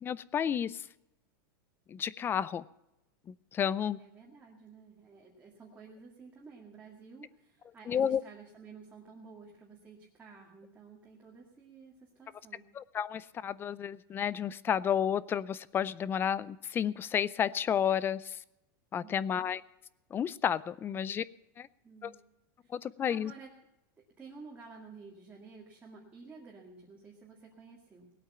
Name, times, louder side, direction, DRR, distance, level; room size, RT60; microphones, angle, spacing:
voice 1, 0.0-0.8 1.9-2.6 3.5-4.0 7.9-8.2 12.8-18.4 18.9-19.6 20.1-21.2 21.6-21.7 22.0-22.1 22.7-23.3, left 8 dB, 20° left, 20 dB, 0.4 m, -31 dB
voice 2, 4.0-12.7 19.0-19.5 20.9-21.2 21.8-22.2 22.6-22.7 23.1-23.5 24.2-28.1, right 4 dB, 15° right, -3 dB, 2.1 m, -52 dB
19.0 x 8.7 x 5.6 m, 0.88 s
supercardioid pair, 150°, 12 cm